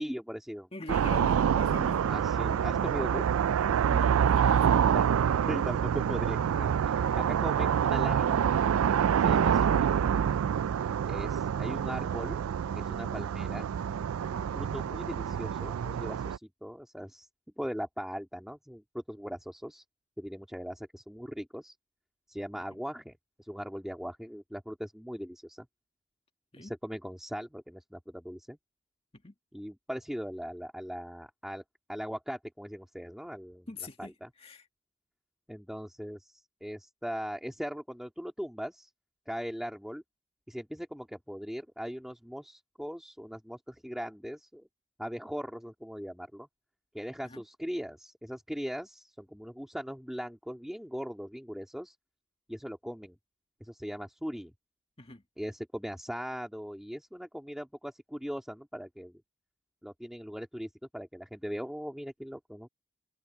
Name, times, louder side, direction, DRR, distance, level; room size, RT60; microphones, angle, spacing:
voice 1, 0.0-0.7 2.1-3.2 4.9-5.1 5.5-8.5 9.2-9.9 11.1-12.4 12.8-13.7 14.3-17.3 17.6-19.8 20.2-21.8 22.3-23.1 23.4-25.7 26.6-28.6 29.5-31.6 31.9-33.7 34.0-34.3 35.5-38.9 39.3-40.0 40.5-44.6 45.0-46.5 46.9-51.9 52.5-53.2 53.6-54.5 55.4-59.2 59.8-62.7, equal, ahead, 2.1 m, -39 dB
voice 2, 0.7-2.1 3.8-4.8 12.9-13.1 22.7-22.8 26.5-26.7 29.1-29.3 33.7-34.7 47.2-47.4 55.0-55.2, left 2 dB, 25° left, 2.1 m, -44 dB
sound 1, 0.9-16.4, right 8 dB, 90° right, 0.3 m, -27 dB
head